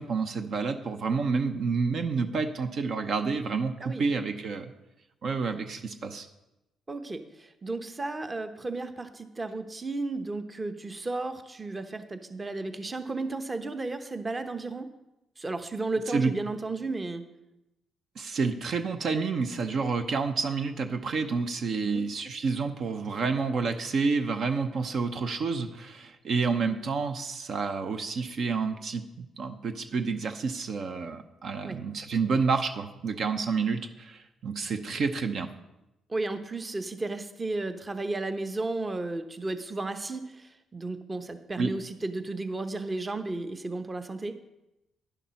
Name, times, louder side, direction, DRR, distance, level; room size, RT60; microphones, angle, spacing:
voice 1, 0.0-4.7 5.2-6.3 16.1-16.3 18.2-35.5 41.6-41.7, right 4 dB, 60° right, 7 dB, 0.7 m, -29 dB
voice 2, 6.9-14.9 15.4-17.2 21.8-22.1 31.6-31.8 36.1-44.3, right 2 dB, 25° right, 9 dB, 0.8 m, -34 dB
10.5 x 7.0 x 5.7 m, 0.93 s
cardioid pair, 90°, 0 cm